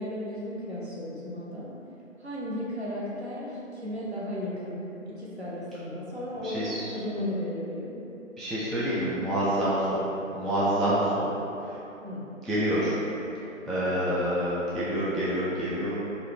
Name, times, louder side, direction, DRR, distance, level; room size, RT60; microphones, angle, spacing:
voice 1, 0.0-1.7 2.2-8.0 12.0-12.3, left 1 dB, 50° right, -7 dB, 0.9 m, -35 dB
voice 2, 6.4-6.9 8.4-10.0 10.3-11.2 11.6-11.7 12.4-12.9 13.7-15.9, equal, ahead, -11 dB, 0.4 m, -27 dB
4.0 x 2.4 x 3.4 m, 2.9 s
figure-of-eight pair, 160°, 41 cm